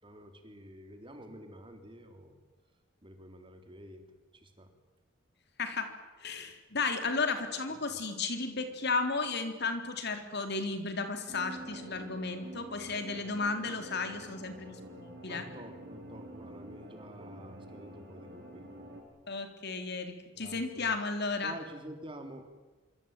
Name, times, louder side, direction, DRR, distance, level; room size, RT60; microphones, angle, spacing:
voice 1, 0.0-2.4 3.0-4.0 4.3-4.7 7.7-8.0 15.3-18.7 20.3-20.9 21.4-22.4, right 1 dB, 25° right, 6 dB, 3.8 m, -49 dB
voice 2, 5.6-5.9 6.2-15.4 19.3-21.5, left 4 dB, 60° left, 7 dB, 3.8 m, -34 dB
sound 1, 11.3-19.0, right 1 dB, 55° right, 7.1 m, -47 dB
26.0 x 25.0 x 9.2 m, 1.2 s
head